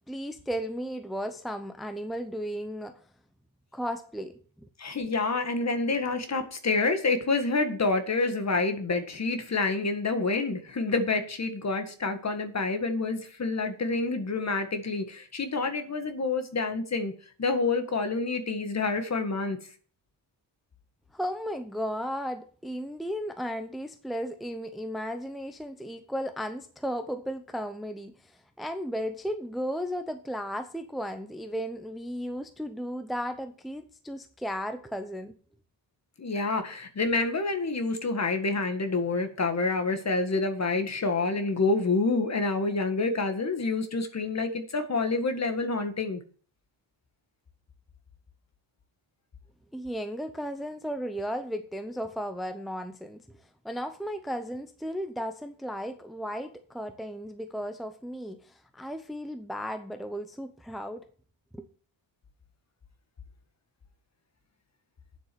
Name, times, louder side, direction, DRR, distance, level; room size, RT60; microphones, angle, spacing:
voice 1, 0.1-3.1 3.7-4.7 21.1-35.3 49.7-61.0 61.5-61.6, equal, ahead, 0.7 m, -35 dB
voice 2, 4.8-17.1 17.4-19.6 36.2-46.2, left 3 dB, 35° left, 1.8 m, -28 dB
9.2 x 7.6 x 7.0 m
wide cardioid pair, 150°, 45 cm